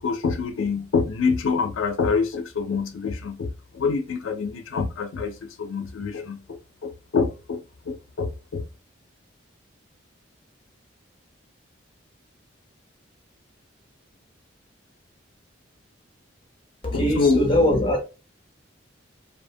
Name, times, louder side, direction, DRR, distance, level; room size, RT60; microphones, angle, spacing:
voice 1, 0.0-8.6 16.9-17.4, left 5 dB, 85° left, 0.4 m, -26 dB
voice 2, 16.8-18.0, left 1 dB, 25° left, 0.6 m, -21 dB
2.6 x 2.1 x 2.6 m
head